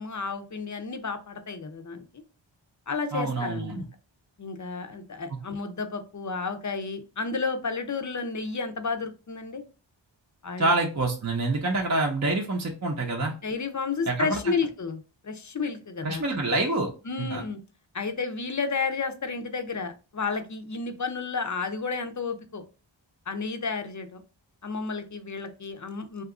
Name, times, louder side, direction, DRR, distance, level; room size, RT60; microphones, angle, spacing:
voice 1, 0.0-2.0 2.9-3.8 4.4-9.6 10.4-10.7 13.4-16.2 17.0-17.6 17.9-22.6 23.3-24.2 24.6-26.2, left 4 dB, 40° left, 7 dB, 0.5 m, -32 dB
voice 2, 3.1-3.8 10.6-13.3 14.1-14.4 16.0-16.9 17.2-17.4, right 2 dB, 35° right, 1 dB, 0.6 m, -26 dB
2.8 x 2.4 x 3.6 m, 0.33 s
wide cardioid pair, 45°, 47 cm